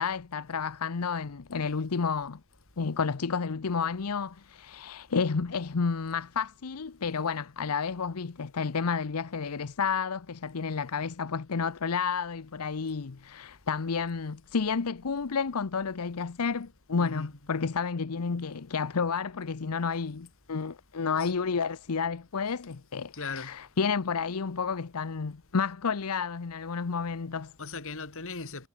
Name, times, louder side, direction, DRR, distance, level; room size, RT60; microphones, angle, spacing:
voice 1, 0.0-2.4 2.8-27.5, left 5 dB, 85° left, 0.7 m, -31 dB
voice 2, 17.0-17.4 21.2-21.3 23.1-23.5 27.6-28.7, left 4 dB, 65° left, 3.0 m, -38 dB
head